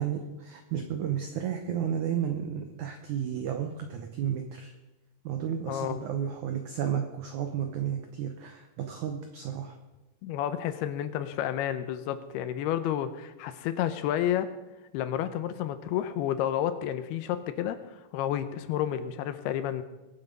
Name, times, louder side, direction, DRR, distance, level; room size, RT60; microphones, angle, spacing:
voice 1, 0.0-4.7 5.2-9.8, right 9 dB, 85° right, 6 dB, 1.7 m, -32 dB
voice 2, 5.7-6.0 10.2-14.5 14.9-17.8 18.1-19.8, left 11 dB, 80° left, 11 dB, 2.6 m, -30 dB
22.0 x 7.7 x 5.3 m, 1.0 s
omnidirectional pair, 4.8 m